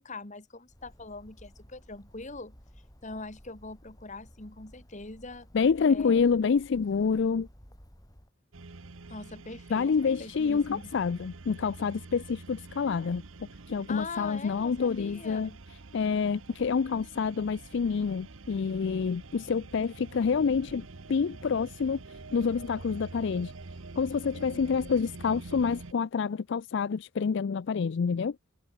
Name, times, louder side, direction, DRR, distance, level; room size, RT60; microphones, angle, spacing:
voice 1, 0.0-2.5 3.0-5.5 5.9-6.2 9.1-10.9 13.9-15.6, left 3 dB, 35° left, 2.0 m, -42 dB
Bird, 0.7-8.3, equal, 20° left, 7.9 m, -55 dB
voice 2, 5.5-7.5 9.7-13.2 13.7-15.5 15.9-22.0 22.3-23.5 24.0-28.4, left 5 dB, 60° left, 0.4 m, -27 dB
sound 1, 8.5-25.9, right 3 dB, 80° right, 1.1 m, -46 dB
head